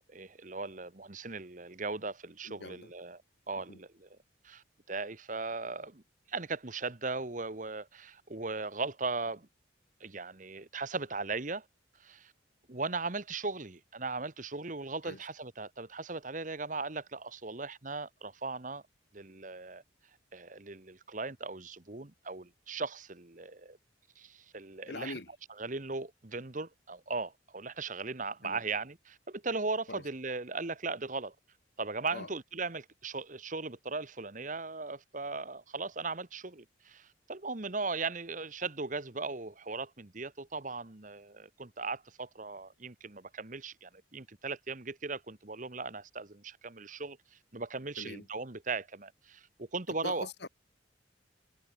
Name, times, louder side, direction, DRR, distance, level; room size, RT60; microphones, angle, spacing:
voice 1, 0.1-3.2 3.5-4.2 4.4-6.0 6.3-9.5 10.0-11.6 12.0-12.3 12.7-18.8 19.1-19.8 20.3-23.8 24.2-25.1 25.6-31.3 31.8-50.3, right 3 dB, 40° right, 1.3 m, -38 dB
voice 2, 2.4-2.9 3.7-3.8 15.0-15.2 24.9-25.3 28.4-28.6 29.9-30.0 32.1-32.3 48.0-48.2 50.0-50.5, left 2 dB, 60° left, 1.9 m, -42 dB
head